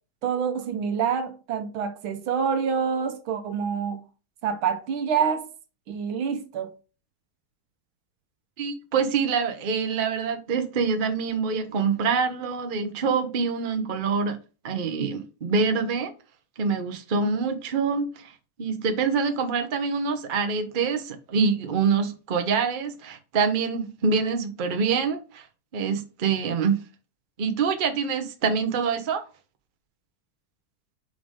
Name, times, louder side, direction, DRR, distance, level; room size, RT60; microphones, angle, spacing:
voice 1, 0.2-4.0 4.4-5.5 5.9-6.7, right 7 dB, 80° right, 1.8 m, -27 dB
voice 2, 8.6-14.4 14.6-16.1 16.6-25.5 25.7-26.8 27.4-29.2, right 5 dB, 50° right, 0.6 m, -25 dB
5.9 x 5.1 x 3.6 m
omnidirectional pair, 2.2 m